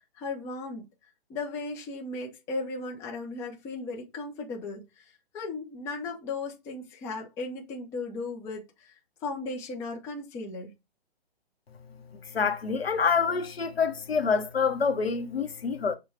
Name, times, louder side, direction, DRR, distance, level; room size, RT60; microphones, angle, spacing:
voice 1, 0.2-0.9 1.3-5.0 5.3-8.9 9.2-10.7, left 3 dB, 10° left, 0.6 m, -36 dB
voice 2, 12.3-16.0, left 5 dB, 70° left, 0.9 m, -26 dB
6.6 x 2.3 x 3.3 m
figure-of-eight pair, 130°, 32 cm